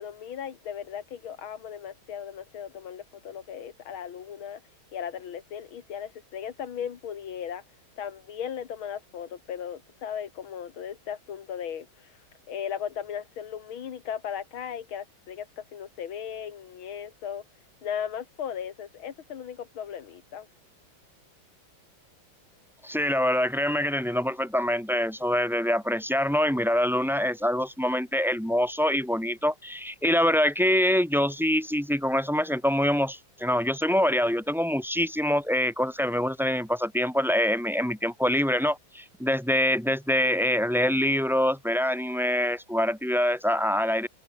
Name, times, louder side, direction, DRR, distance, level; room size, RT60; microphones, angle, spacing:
voice 1, 0.0-4.6 4.9-7.6 8.0-12.1 12.5-17.4 17.8-20.5, left 8 dB, 80° left, 2.4 m, -37 dB
voice 2, 22.8-44.1, equal, ahead, 2.7 m, -25 dB
omnidirectional pair, 2.3 m